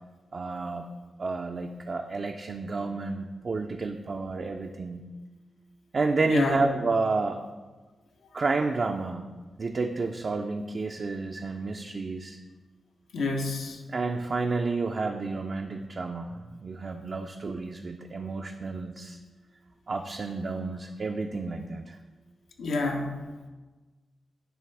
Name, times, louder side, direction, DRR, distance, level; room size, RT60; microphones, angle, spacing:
voice 1, 0.3-0.9 1.2-5.1 5.9-7.4 8.3-9.2 9.6-12.4 13.9-19.2 19.9-22.0, right 3 dB, 50° right, 3 dB, 0.4 m, -30 dB
voice 2, 6.3-6.6 13.1-13.8 22.6-23.3, left 3 dB, 90° left, 2 dB, 0.9 m, -28 dB
9.3 x 3.2 x 4.7 m, 1.3 s
cardioid pair, 90°, 0 cm